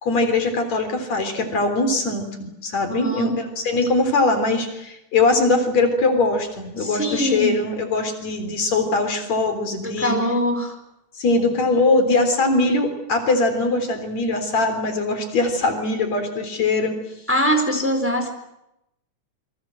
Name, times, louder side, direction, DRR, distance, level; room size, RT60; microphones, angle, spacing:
voice 1, 0.0-10.2 11.2-17.0, left 3 dB, 60° left, 6 dB, 4.9 m, -21 dB
voice 2, 2.9-3.4 6.8-7.6 9.8-10.8 17.3-18.3, equal, 5° right, 4 dB, 4.1 m, -22 dB
28.5 x 24.0 x 7.7 m, 0.84 s
omnidirectional pair, 3.5 m